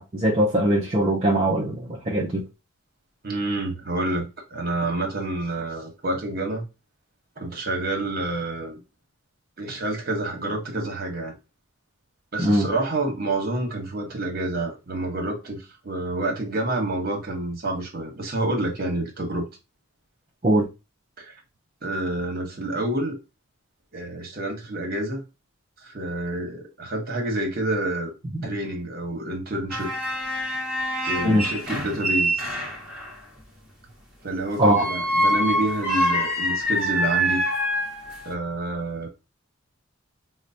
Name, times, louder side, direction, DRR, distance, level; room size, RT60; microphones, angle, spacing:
voice 1, 0.0-2.5 12.4-12.7 20.4-20.7 28.3-28.5 31.2-31.4 34.6-34.8, right 1 dB, 30° right, 0.5 m, -21 dB
voice 2, 3.2-6.6 7.4-8.8 9.6-11.3 12.3-19.5 21.2-21.3 21.8-23.2 23.9-25.2 25.8-28.1 28.4-29.9 31.1-32.4 34.2-37.4 38.2-39.1, right 2 dB, 45° right, 1.0 m, -28 dB
sound 1, 29.7-33.1 34.6-38.3, equal, 5° right, 1.1 m, -25 dB
4.5 x 2.1 x 2.7 m
head